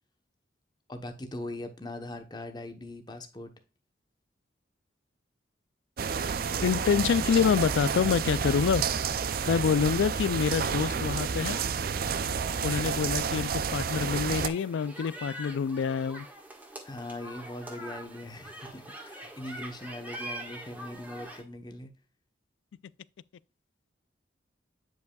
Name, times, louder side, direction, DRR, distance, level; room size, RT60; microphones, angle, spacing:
voice 1, 0.9-3.5 16.8-21.9, left 1 dB, 20° left, 0.9 m, -40 dB
sound 1, 6.0-14.5, right 6 dB, 50° right, 0.4 m, -30 dB
voice 2, 6.6-8.8 9.5-11.6 12.6-16.3, left 6 dB, 75° left, 0.3 m, -26 dB
sound 2, 13.4-21.4, right 1 dB, 10° right, 1.5 m, -44 dB
9.1 x 5.3 x 2.3 m
head